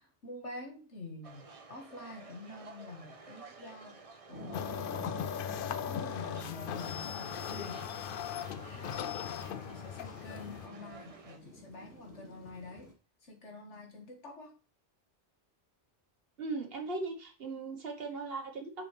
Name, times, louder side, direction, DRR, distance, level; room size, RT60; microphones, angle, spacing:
voice 1, 0.0-5.2 5.7-7.9 8.6-12.9 13.2-14.5, left 2 dB, 85° left, 2.0 m, -47 dB
sound 1, 1.2-11.4, right 4 dB, 35° right, 0.8 m, -53 dB
sound 2, 4.3-12.9, right 1 dB, 15° right, 1.8 m, -51 dB
sound 3, 4.5-10.7, left 9 dB, 60° left, 0.6 m, -38 dB
voice 2, 16.4-18.8, right 3 dB, 55° right, 1.4 m, -38 dB
6.8 x 6.1 x 3.3 m
omnidirectional pair, 1.2 m